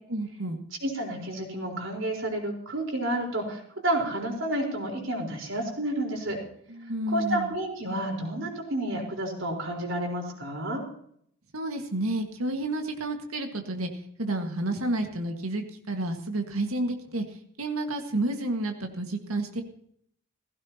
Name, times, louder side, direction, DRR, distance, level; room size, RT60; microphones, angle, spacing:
voice 1, 0.1-0.6 6.7-7.5 11.5-13.9 14.2-19.6, right 2 dB, 90° right, 4 dB, 1.8 m, -30 dB
voice 2, 0.8-6.4 7.1-10.8, right 1 dB, 65° right, 0 dB, 4.3 m, -30 dB
16.5 x 16.0 x 2.9 m, 0.67 s
head